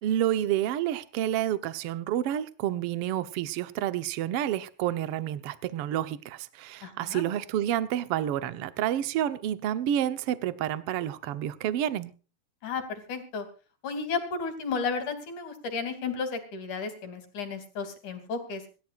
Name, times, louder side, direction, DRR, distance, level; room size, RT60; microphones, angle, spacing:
voice 1, 0.0-12.1, right 11 dB, 70° right, 1.4 m, -29 dB
voice 2, 6.8-7.2 12.6-13.5 13.8-18.6, left 5 dB, 60° left, 4.3 m, -33 dB
26.0 x 13.5 x 2.5 m
omnidirectional pair, 4.0 m